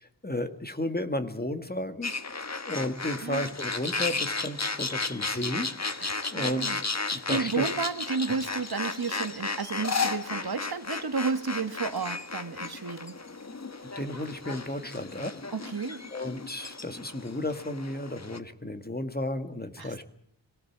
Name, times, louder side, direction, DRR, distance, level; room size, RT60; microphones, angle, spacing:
voice 1, 0.2-6.0 6.3-6.8 7.1-7.7 14.0-15.3 16.1-20.0, left 1 dB, 20° left, 8 dB, 2.0 m, -33 dB
sound 1, 2.0-18.4, left 3 dB, 35° left, 1.4 m, -34 dB
voice 2, 6.0-6.8 7.0-13.1 15.5-16.0 19.8-20.0, right 4 dB, 55° right, 10 dB, 1.6 m, -32 dB
24.5 x 18.0 x 7.4 m, 0.68 s
wide cardioid pair, 75°, 44 cm